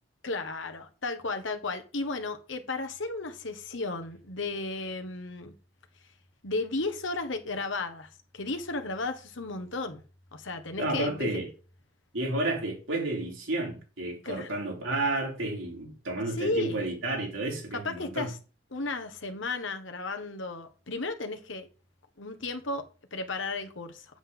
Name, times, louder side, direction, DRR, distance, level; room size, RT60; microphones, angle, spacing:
voice 1, 0.2-5.5 6.4-10.0 10.3-11.3 14.2-14.5 16.3-16.8 17.7-18.4 18.7-21.7 22.2-24.1, left 3 dB, 80° left, 1.5 m, -34 dB
voice 2, 10.8-11.5 12.1-18.3, right 2 dB, 90° right, 4.1 m, -31 dB
7.9 x 7.9 x 3.9 m
head